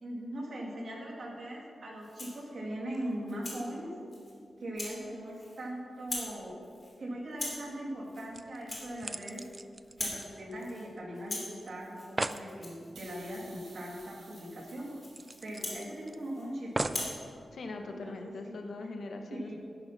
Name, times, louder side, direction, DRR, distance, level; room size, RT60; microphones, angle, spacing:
voice 1, 0.0-3.9 4.6-6.6 7.0-9.4 10.0-14.9 15.4-17.1 17.8-18.6 19.3-19.6, right 1 dB, 50° right, -2 dB, 2.4 m, -40 dB
Rattle (instrument), 2.0-2.4 2.9-3.6 4.1-4.3 4.7-5.0 5.3-5.7 6.0-6.4 6.6-6.9 7.3-7.7 8.0-8.3 8.6-9.6 9.8-10.3 10.6-10.9 11.1-16.5 16.8-17.2, left 2 dB, 25° left, 2.5 m, -42 dB
Keys being dropped on Wooden Tabel, 8.3-11.0 11.3-11.4 11.7-11.8 12.0-12.5 14.0-14.1 14.4-14.5 15.1-16.2 16.8-17.2 17.9-18.0, right 2 dB, 20° right, 0.3 m, -38 dB
sound 1, 12.9-16.3, right 4 dB, 85° right, 2.3 m, -56 dB
voice 2, 17.5-19.5, left 3 dB, 60° left, 4 dB, 1.0 m, -41 dB
11.0 x 10.5 x 5.7 m, 2.4 s
wide cardioid pair, 175°, 0 cm